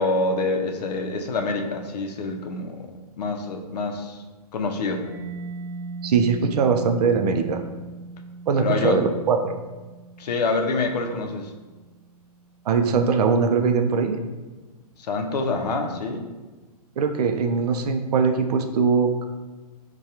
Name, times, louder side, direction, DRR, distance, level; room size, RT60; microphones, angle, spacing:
voice 1, 0.0-2.8 3.2-4.2 4.5-5.0 8.6-9.0 10.2-11.5 15.0-16.3, left 3 dB, 85° left, 4 dB, 0.6 m, -26 dB
Mallet percussion, 5.0-12.5, right 4 dB, 20° right, 0.6 m, -39 dB
voice 2, 6.0-7.6 8.5-9.6 12.7-14.2 17.0-19.2, right 5 dB, 75° right, 5 dB, 0.4 m, -21 dB
4.7 x 2.2 x 2.8 m, 1.3 s
hypercardioid pair, 165°, 20 cm